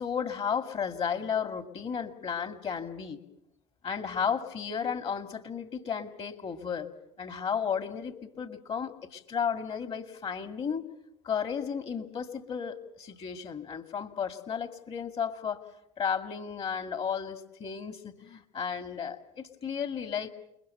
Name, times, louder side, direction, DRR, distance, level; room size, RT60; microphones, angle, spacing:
voice 1, 0.0-3.2 3.8-6.9 7.2-10.8 11.2-15.6 16.0-20.3, left 7 dB, 45° left, 9 dB, 2.4 m, -33 dB
29.5 x 21.5 x 6.8 m, 0.81 s
hypercardioid pair, 65°, 14 cm